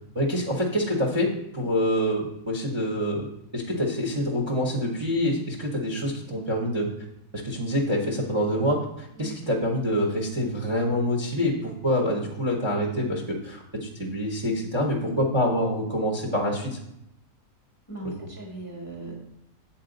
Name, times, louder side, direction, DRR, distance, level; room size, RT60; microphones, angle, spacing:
voice 1, 0.1-3.3 3.5-6.9 7.4-16.8 18.0-18.3, equal, 25° right, 0 dB, 0.7 m, -26 dB
voice 2, 17.9-19.1, right 2 dB, 15° left, -1 dB, 0.8 m, -39 dB
7.4 x 4.3 x 3.9 m, 0.79 s
omnidirectional pair, 1.5 m